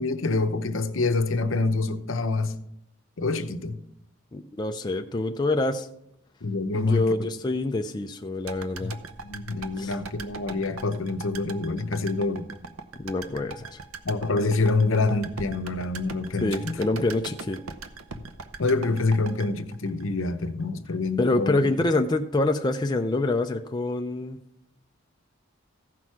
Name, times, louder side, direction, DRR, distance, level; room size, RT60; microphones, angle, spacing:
voice 1, 0.0-2.5 3.2-3.8 6.4-7.1 8.8-8.9 9.2-12.5 14.0-16.8 18.6-21.6, left 3 dB, 65° left, 0.8 m, -26 dB
voice 2, 4.3-5.9 6.7-9.0 9.8-9.9 13.0-13.8 16.4-17.6 21.2-24.4, left 2 dB, 20° left, 0.4 m, -26 dB
sound 1, 8.5-20.6 20.9-21.0, right 4 dB, 80° right, 0.8 m, -40 dB
15.0 x 6.1 x 4.6 m
head